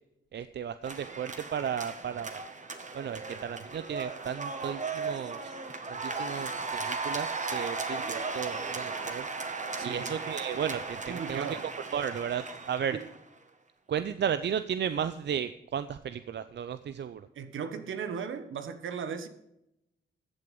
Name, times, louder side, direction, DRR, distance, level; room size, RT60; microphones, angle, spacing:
voice 1, 0.3-2.4 2.9-5.5 5.9-9.3 9.8-11.6 11.9-13.0 13.9-17.3, right 8 dB, 60° right, 0.6 m, -34 dB
sound 1, 0.8-13.2, right 4 dB, 35° right, 1.7 m, -36 dB
voice 2, 9.8-10.1 11.1-11.7 12.9-13.0 17.3-19.3, right 6 dB, 75° right, 1.3 m, -36 dB
14.0 x 7.6 x 5.4 m
supercardioid pair, 50°, 21 cm